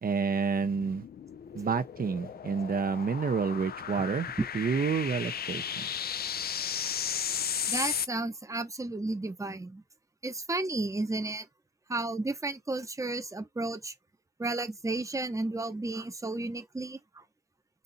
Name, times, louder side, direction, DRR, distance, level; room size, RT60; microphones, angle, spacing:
voice 1, 0.0-1.0 1.5-4.3 4.5-5.9, right 5 dB, 60° right, 0.6 m, -29 dB
sound 1, 0.5-8.1, left 8 dB, 70° left, 0.4 m, -35 dB
voice 2, 7.7-9.8 10.2-11.5 11.9-13.9 14.4-17.2, right 2 dB, 20° right, 0.7 m, -33 dB
4.2 x 2.7 x 3.9 m
cardioid pair, 50°, 17 cm